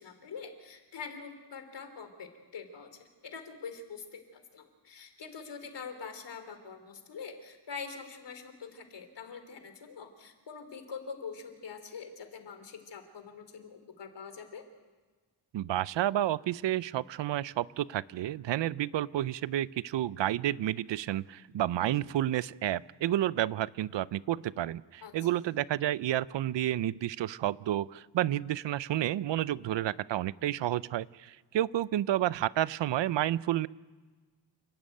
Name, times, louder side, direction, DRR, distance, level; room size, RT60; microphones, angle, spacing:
voice 1, 0.0-14.7 25.0-25.3, left 5 dB, 75° left, 8 dB, 3.2 m, -44 dB
voice 2, 15.5-33.7, right 13 dB, 80° right, 19 dB, 0.6 m, -30 dB
29.0 x 12.5 x 9.1 m, 1.3 s
wide cardioid pair, 100°, 43 cm